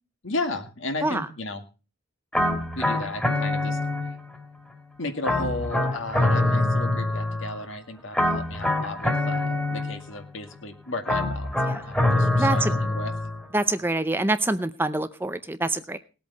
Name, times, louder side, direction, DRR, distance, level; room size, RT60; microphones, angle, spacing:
voice 1, 0.2-1.6 2.8-3.8 5.0-13.1, left 2 dB, 65° left, 6 dB, 2.1 m, -34 dB
sound 1, 2.3-4.4 5.2-7.6 8.1-10.2 11.1-13.4, left 2 dB, 5° left, 2.2 m, -25 dB
voice 2, 12.4-12.7 13.5-16.0, right 2 dB, 10° right, 11 dB, 0.6 m, -25 dB
19.5 x 8.4 x 4.1 m, 0.33 s
head